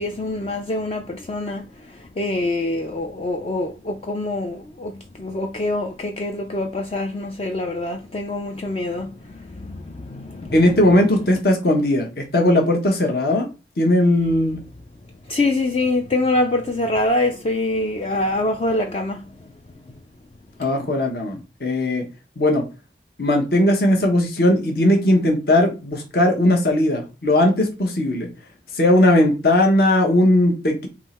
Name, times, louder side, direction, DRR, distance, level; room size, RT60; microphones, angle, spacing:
voice 1, 0.0-1.7 2.2-10.6 15.3-19.2, left 2 dB, 30° left, 0.3 m, -25 dB
voice 2, 10.5-13.5 13.8-14.6 20.6-22.0 22.4-22.6 23.2-28.3 28.7-30.9, left 1 dB, 55° left, 1.0 m, -18 dB
3.7 x 3.0 x 4.2 m
head